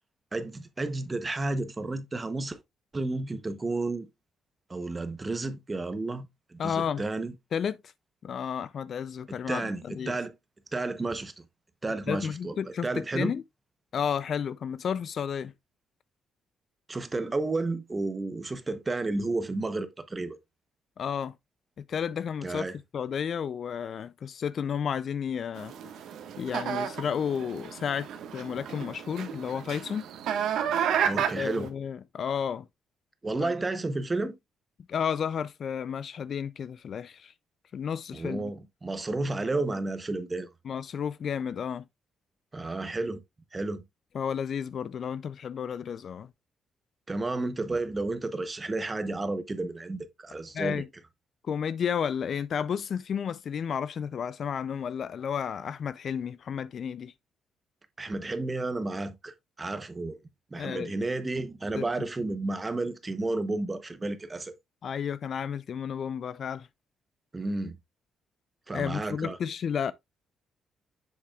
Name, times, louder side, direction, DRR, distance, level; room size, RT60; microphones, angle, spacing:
voice 1, 0.3-2.6 2.9-4.1 4.7-6.3 6.5-7.3 9.3-10.3 10.7-11.3 11.8-13.3 16.9-20.4 22.4-22.8 31.0-31.7 33.2-34.3 38.1-40.5 42.5-43.2 43.5-43.8 47.1-50.8 58.0-60.2 60.5-64.5 67.3-67.8 68.7-69.4, right 2 dB, 15° right, 0.8 m, -32 dB
voice 2, 6.6-7.0 7.5-7.8 8.2-10.2 12.1-13.4 13.9-15.5 21.0-21.3 21.9-22.7 22.9-25.7 26.4-30.1 31.1-32.7 33.4-33.5 34.9-37.3 37.7-38.5 40.6-41.8 44.1-46.3 50.5-50.9 51.4-57.1 60.6-60.9 61.7-61.8 64.8-66.7 68.7-69.9, left 7 dB, 45° left, 0.3 m, -32 dB
sound 1, 25.6-31.7, right 8 dB, 70° right, 1.3 m, -32 dB
7.5 x 7.0 x 2.3 m
cardioid pair, 165°, 0 cm